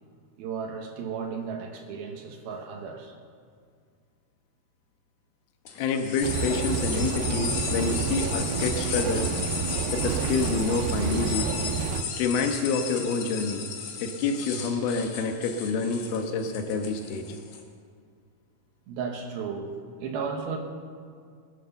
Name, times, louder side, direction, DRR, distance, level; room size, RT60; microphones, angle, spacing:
voice 1, 0.4-3.2 18.9-20.6, right 5 dB, 70° right, 4 dB, 2.9 m, -34 dB
sound 1, 5.7-17.6, left 6 dB, 55° left, 2.1 m, -35 dB
voice 2, 5.8-9.3 9.9-11.5 12.2-13.7 14.0-17.2, left 4 dB, 70° left, 5 dB, 2.9 m, -28 dB
sound 2, 6.2-12.0, right 7 dB, 85° right, 2.7 m, -29 dB
20.5 x 10.0 x 6.9 m, 2.1 s
omnidirectional pair, 4.7 m